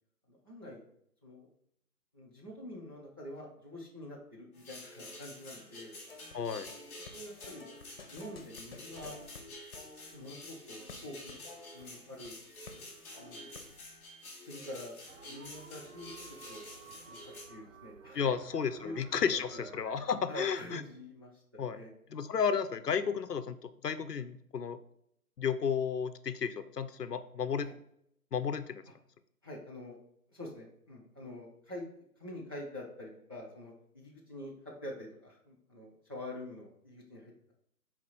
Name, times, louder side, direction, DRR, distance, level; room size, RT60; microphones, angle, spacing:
voice 1, 0.3-0.8 1.2-1.5 2.1-5.9 7.1-7.7 8.1-9.1 10.1-11.4 11.7-12.4 13.2-13.5 14.5-14.9 15.2-18.3 18.8-19.7 20.3-21.9 27.6-27.7 29.4-29.9 30.3-37.5, left 1 dB, 15° right, -6 dB, 0.7 m, -46 dB
sound 1, 4.5-17.4, left 1 dB, 10° left, 1.0 m, -49 dB
sound 2, 6.1-6.4 6.6-12.3 12.6-12.8 13.1-14.0, left 3 dB, 35° left, 1.2 m, -52 dB
voice 2, 6.3-6.7 18.1-20.8 21.6-21.8 22.1-24.8 25.4-27.7 28.3-28.8, left 6 dB, 75° left, 13 dB, 0.8 m, -33 dB
sound 3, 15.1-20.2, right 6 dB, 55° right, 0.6 m, -53 dB
6.5 x 4.1 x 4.6 m, 0.73 s
figure-of-eight pair, 155°, 48 cm